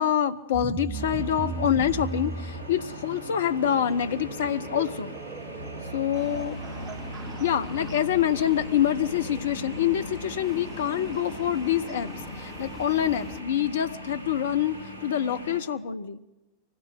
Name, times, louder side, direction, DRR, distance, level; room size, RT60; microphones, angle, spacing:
voice 1, 0.0-5.1 5.9-6.6 7.4-16.2, left 10 dB, 60° left, 12 dB, 0.9 m, -26 dB
sound 1, 0.5-13.2, right 5 dB, 30° right, 0.9 m, -40 dB
sound 2, 0.9-15.6, equal, 80° left, 2.9 m, -39 dB
sound 3, 6.1-13.4, equal, ahead, 2.9 m, -45 dB
24.5 x 16.0 x 6.5 m, 1.1 s
figure-of-eight pair, 90°, 0 cm